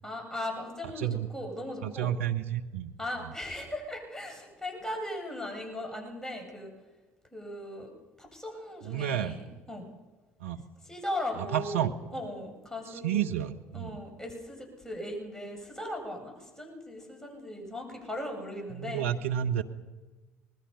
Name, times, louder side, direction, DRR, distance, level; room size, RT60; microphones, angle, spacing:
voice 1, 0.0-2.1 3.0-6.7 7.3-7.9 8.2-9.9 10.8-11.9 12.1-13.3 13.7-19.0, left 1 dB, 10° left, 1 dB, 7.7 m, -38 dB
voice 2, 1.8-2.9 8.8-9.4 10.4-10.6 11.4-11.9 12.9-13.9 18.7-19.6, right 10 dB, 80° right, 4 dB, 1.3 m, -30 dB
24.5 x 20.0 x 5.7 m, 1.2 s
figure-of-eight pair, 55°, 7 cm